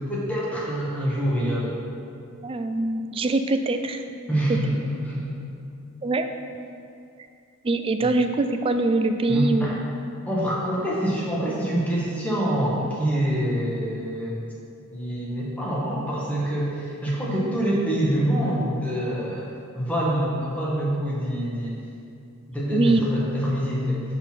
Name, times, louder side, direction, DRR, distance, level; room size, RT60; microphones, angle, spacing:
voice 1, 0.0-1.7 4.3-5.3 9.3-9.8 10.3-14.4 14.9-19.5 19.7-21.7 22.5-24.0, right 1 dB, 5° left, -6 dB, 1.3 m, -25 dB
voice 2, 2.4-4.0 6.0-6.3 7.6-9.7 22.7-23.0, right 2 dB, 25° right, 7 dB, 0.3 m, -23 dB
6.9 x 3.9 x 5.8 m, 2.5 s
head